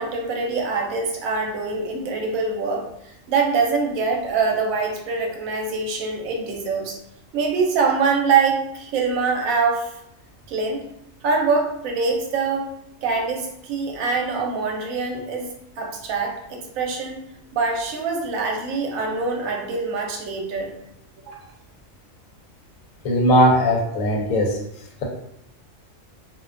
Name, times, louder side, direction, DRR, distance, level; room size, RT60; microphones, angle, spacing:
voice 1, 0.0-7.0 7.3-9.9 10.5-10.8 11.2-12.7 13.0-15.5 15.8-17.2 17.5-20.7 21.3-21.4, right 4 dB, 80° right, 1 dB, 1.0 m, -24 dB
voice 2, 23.0-24.6, equal, 85° left, -1 dB, 1.0 m, -18 dB
2.5 x 2.2 x 2.4 m, 0.78 s
omnidirectional pair, 1.4 m